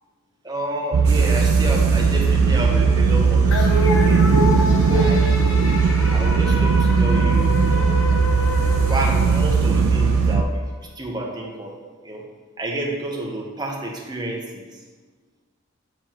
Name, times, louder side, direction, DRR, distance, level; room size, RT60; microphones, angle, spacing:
voice 1, 0.4-4.3 4.9-5.4 6.1-8.0 8.8-11.8 12.0-12.2 12.6-14.8, right 1 dB, 20° right, -2 dB, 1.0 m, -30 dB
sound 1, 0.9-10.4, right 5 dB, 65° right, 0.3 m, -18 dB
sound 2, 1.0-10.4, right 2 dB, 80° right, 0.9 m, -36 dB
sound 3, 3.5-10.1, left 1 dB, 70° left, 0.9 m, -27 dB
7.2 x 6.9 x 3.0 m, 1.4 s
head